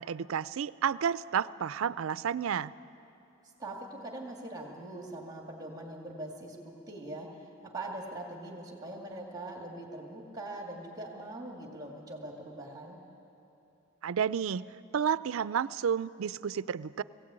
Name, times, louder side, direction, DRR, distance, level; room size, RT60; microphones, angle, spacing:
voice 1, 0.0-2.7 14.0-14.6 14.9-17.0, right 7 dB, 75° right, 17 dB, 0.4 m, -31 dB
voice 2, 3.6-13.0, right 1 dB, 20° right, 0 dB, 2.1 m, -42 dB
20.5 x 16.5 x 8.8 m, 2.9 s
head